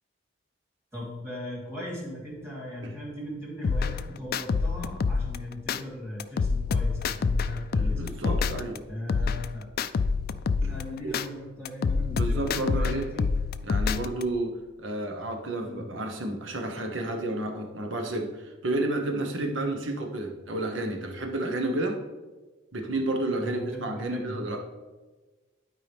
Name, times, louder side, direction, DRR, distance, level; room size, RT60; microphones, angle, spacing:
voice 1, 0.9-8.0 8.9-9.6 10.6-13.3 15.6-15.9 23.4-24.5, left 1 dB, 15° right, -5 dB, 2.6 m, -38 dB
sound 1, 3.6-5.8 6.2-8.8 9.1-11.3 11.7-14.2, left 4 dB, 55° left, 0.3 m, -27 dB
voice 2, 7.7-8.8 9.2-9.3 10.6-10.7 11.0-11.2 12.1-13.1 13.6-22.0 22.7-24.6, right 2 dB, 80° right, 3 dB, 1.1 m, -31 dB
12.0 x 4.8 x 3.5 m, 1.3 s
head